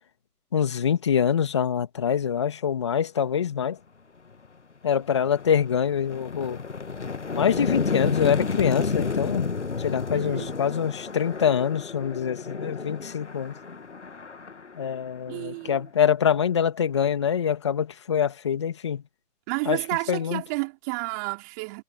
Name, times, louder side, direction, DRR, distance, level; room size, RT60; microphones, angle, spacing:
voice 1, 0.5-3.8 4.8-6.6 7.3-9.5 9.8-13.5 14.8-19.0 19.7-19.8 20.1-20.4, left 8 dB, 15° left, 2.3 m, -25 dB
sound 1, 4.3-4.5 4.9-15.7, left 4 dB, 45° left, 1.8 m, -31 dB
voice 2, 10.1-10.6 15.3-15.9 19.5-21.8, right 30 dB, 10° right, 5.3 m, -31 dB
figure-of-eight pair, 165°, 49 cm